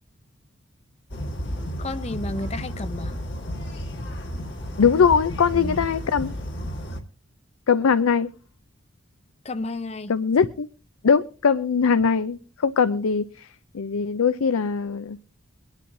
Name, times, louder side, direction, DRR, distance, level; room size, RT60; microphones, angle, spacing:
sound 1, 1.1-7.0, equal, 55° left, 1.6 m, -32 dB
voice 1, 1.8-3.2 9.4-10.1, left 2 dB, 30° left, 0.6 m, -32 dB
voice 2, 4.8-6.3 7.7-8.3 10.1-10.7 11.0-13.5 13.7-15.2, left 6 dB, 85° left, 0.5 m, -21 dB
22.5 x 10.5 x 2.6 m
head